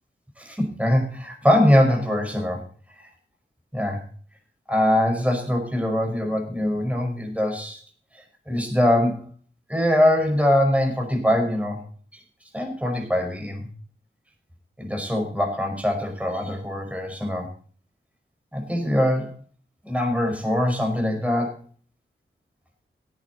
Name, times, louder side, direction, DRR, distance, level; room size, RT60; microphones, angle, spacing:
voice 1, 0.4-2.6 3.0-3.1 3.7-4.0 4.7-7.8 8.5-9.3 9.7-11.8 12.5-13.7 14.8-17.5 18.5-19.3 19.8-21.6, left 1 dB, 5° right, 2 dB, 5.3 m, -22 dB
17.5 x 9.2 x 4.2 m, 0.43 s
wide cardioid pair, 65°, 21 cm